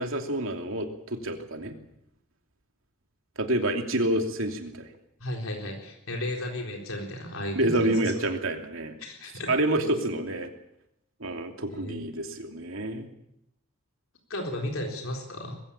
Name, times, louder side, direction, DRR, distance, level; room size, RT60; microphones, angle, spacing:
voice 1, 0.0-1.7 3.4-4.9 7.5-8.9 9.5-10.5 11.2-13.1, right 1 dB, 70° right, 4 dB, 2.9 m, -28 dB
voice 2, 5.2-8.0 9.0-9.5 11.7-12.0 14.3-15.6, left 1 dB, 75° left, 1 dB, 4.0 m, -34 dB
20.5 x 16.0 x 8.7 m, 0.80 s
head